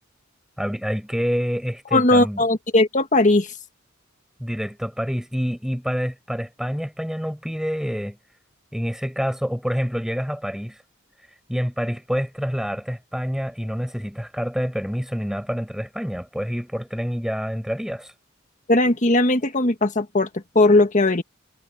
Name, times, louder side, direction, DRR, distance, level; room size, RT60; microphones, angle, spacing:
voice 1, 0.6-2.4 4.4-8.2 8.7-10.8 11.5-18.1, equal, ahead, 6.3 m, -27 dB
voice 2, 1.9-3.5 18.7-20.3 20.5-21.2, left 2 dB, 40° left, 1.7 m, -18 dB
head